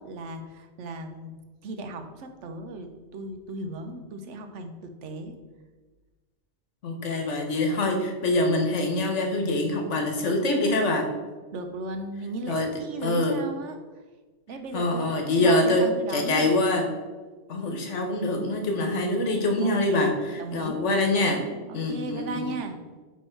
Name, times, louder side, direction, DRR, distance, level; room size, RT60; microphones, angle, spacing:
voice 1, 0.0-1.3 1.6-5.3 11.5-13.8 14.5-16.6 19.6-20.8 21.7-22.8, right 2 dB, 85° right, 6 dB, 1.0 m, -36 dB
voice 2, 6.8-11.1 12.5-12.7 13.0-13.4 14.7-16.9 17.5-21.4 21.7-22.5, left 2 dB, 85° left, 3 dB, 1.4 m, -25 dB
8.2 x 3.1 x 4.4 m, 1.3 s
omnidirectional pair, 1.2 m